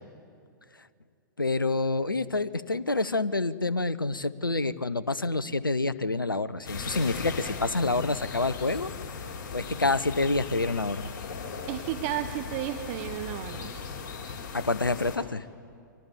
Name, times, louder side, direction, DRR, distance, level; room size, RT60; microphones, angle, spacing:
voice 1, 1.4-8.9 9.5-11.1 14.5-15.4, left 3 dB, 90° left, 16 dB, 0.9 m, -27 dB
sound 1, 6.6-15.2, left 5 dB, 55° left, 6.0 m, -38 dB
voice 2, 11.7-13.7, right 12 dB, 40° right, 8 dB, 1.3 m, -33 dB
29.5 x 25.0 x 7.3 m, 2.3 s
figure-of-eight pair, 110°, 11 cm